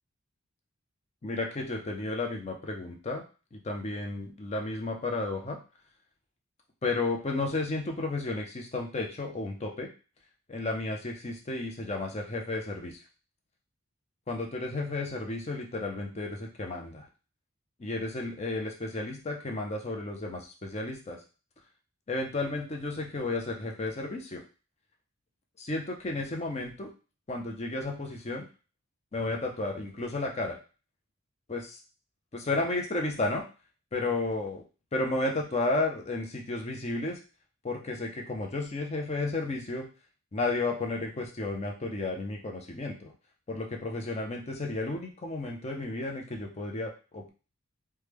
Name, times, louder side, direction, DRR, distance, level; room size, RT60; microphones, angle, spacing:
voice 1, 1.2-3.2 3.5-5.6 6.8-9.9 10.5-13.0 14.3-17.1 17.8-21.2 22.1-24.4 25.6-26.9 27.3-28.4 29.1-30.6 31.5-31.8 32.3-33.4 33.9-34.6 34.9-37.2 37.6-39.9 40.3-43.1 43.5-47.3, left 2 dB, 30° left, 2 dB, 0.5 m, -32 dB
3.1 x 2.2 x 3.4 m, 0.35 s
head